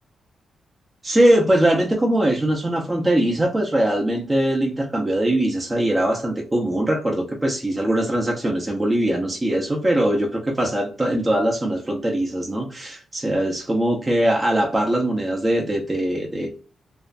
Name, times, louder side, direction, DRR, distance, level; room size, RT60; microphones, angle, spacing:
voice 1, 1.0-16.5, right 1 dB, 25° right, -1 dB, 0.5 m, -21 dB
2.4 x 2.1 x 2.4 m, 0.37 s
cardioid pair, 75°, 0 cm